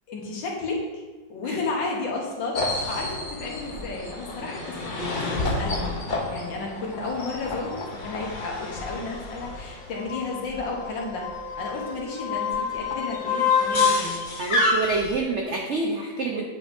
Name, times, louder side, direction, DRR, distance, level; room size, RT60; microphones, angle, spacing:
voice 1, 0.1-0.8 1.3-4.8 5.2-5.9 6.3-11.2 11.6-14.2, left 3 dB, 80° left, -1 dB, 1.8 m, -32 dB
sound 1, 2.5-15.2, left 3 dB, 50° left, 0.6 m, -28 dB
voice 2, 14.4-16.4, right 3 dB, 80° right, 1 dB, 0.6 m, -27 dB
8.8 x 5.3 x 2.6 m, 1.3 s
omnidirectional pair, 2.0 m